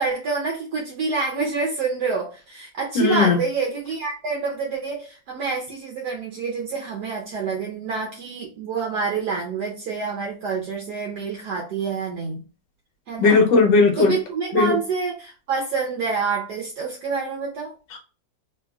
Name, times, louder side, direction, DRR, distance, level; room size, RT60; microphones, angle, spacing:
voice 1, 0.0-12.4 13.1-13.4 14.0-17.7, right 5 dB, 70° right, -1 dB, 1.2 m, -27 dB
voice 2, 2.9-3.4 13.2-14.1 14.5-14.7, left 4 dB, 75° left, 3 dB, 1.4 m, -17 dB
3.1 x 2.9 x 2.3 m, 0.34 s
omnidirectional pair, 2.0 m